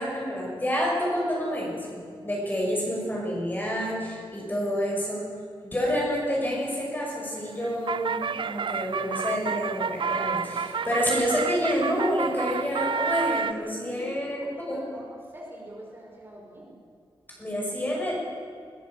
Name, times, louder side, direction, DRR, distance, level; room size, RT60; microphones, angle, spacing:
voice 1, 0.0-5.2 5.6-8.2 8.4-14.8 17.4-18.2, equal, 20° left, -2 dB, 6.0 m, -28 dB
sound 1, 7.4-13.5, right 6 dB, 60° right, 0.6 m, -30 dB
voice 2, 13.9-16.8, right 1 dB, 25° right, -2 dB, 4.8 m, -44 dB
21.5 x 19.0 x 7.3 m, 2.3 s
wide cardioid pair, 160°, 9 cm